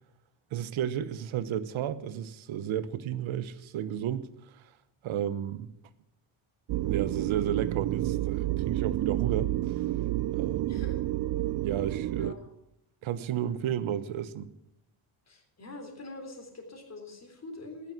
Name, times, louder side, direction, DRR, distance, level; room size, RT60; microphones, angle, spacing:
voice 1, 0.5-4.6 5.0-5.7 6.8-9.8 10.3-10.8 11.5-12.3 13.0-14.5, right 10 dB, 70° right, 1.1 m, -33 dB
sound 1, 6.7-12.3, right 15 dB, 50° right, 0.5 m, -30 dB
voice 2, 10.6-11.0 12.1-12.4 15.3-17.9, left 2 dB, 30° left, 3.6 m, -44 dB
14.0 x 10.5 x 6.0 m
cardioid pair, 115°, 49 cm